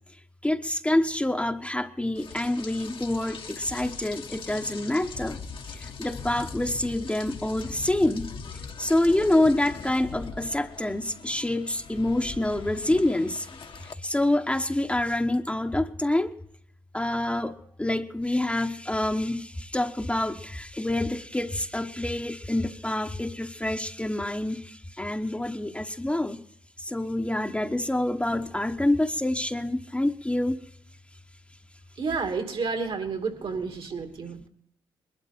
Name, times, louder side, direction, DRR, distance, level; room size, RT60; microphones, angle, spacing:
voice 1, 0.4-5.4 5.7-8.3 8.8-16.3 16.9-26.4 26.8-30.6, left 1 dB, 10° left, 4 dB, 1.1 m, -27 dB
Rain, 2.1-13.9, left 5 dB, 60° left, 1.4 m, -41 dB
voice 2, 32.0-34.5, right 4 dB, 60° right, 5 dB, 2.7 m, -30 dB
21.0 x 12.5 x 4.4 m, 0.71 s
supercardioid pair, 50°, 10 cm